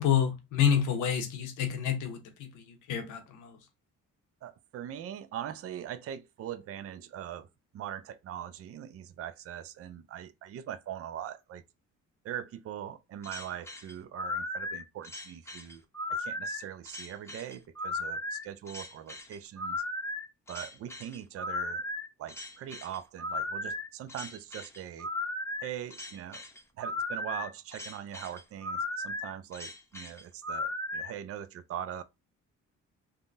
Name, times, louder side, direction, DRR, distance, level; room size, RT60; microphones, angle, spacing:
voice 1, 0.0-3.6, left 8 dB, 85° left, 0.9 m, -29 dB
voice 2, 4.4-7.5 7.7-11.6 12.2-15.8 16.1-19.8 20.5-21.8 22.2-25.1 25.6-26.4 26.8-32.0, right 10 dB, 50° right, 0.4 m, -41 dB
sound 1, 13.2-31.1, left 2 dB, 10° left, 0.7 m, -36 dB
3.5 x 2.2 x 2.5 m
cardioid pair, 90°, 30 cm